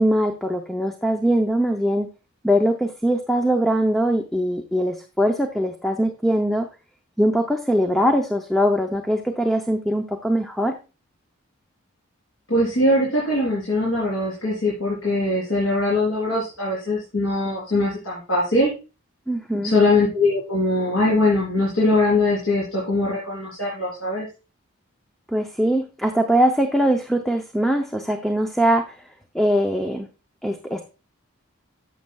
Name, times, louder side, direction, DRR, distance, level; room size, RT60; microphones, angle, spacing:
voice 1, 0.0-2.1 2.4-6.7 7.2-10.7 19.3-19.7 25.3-29.1 29.3-30.1 30.4-30.9, equal, ahead, 4 dB, 0.5 m, -21 dB
voice 2, 12.5-18.7 19.6-24.3, left 2 dB, 80° left, -6 dB, 3.7 m, -21 dB
11.5 x 7.3 x 2.3 m, 0.31 s
head